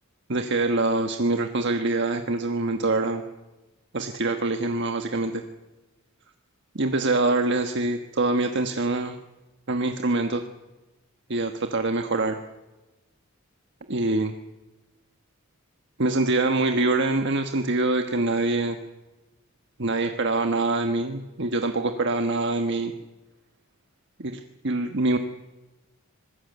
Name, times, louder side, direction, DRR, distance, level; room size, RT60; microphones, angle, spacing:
voice 1, 0.3-3.2 3.9-5.4 6.7-9.2 9.7-10.4 11.3-12.4 13.9-14.3 16.0-18.8 19.8-22.9 24.2-25.2, right 2 dB, 55° right, 6 dB, 1.3 m, -24 dB
25.5 x 20.5 x 8.0 m, 1.1 s
head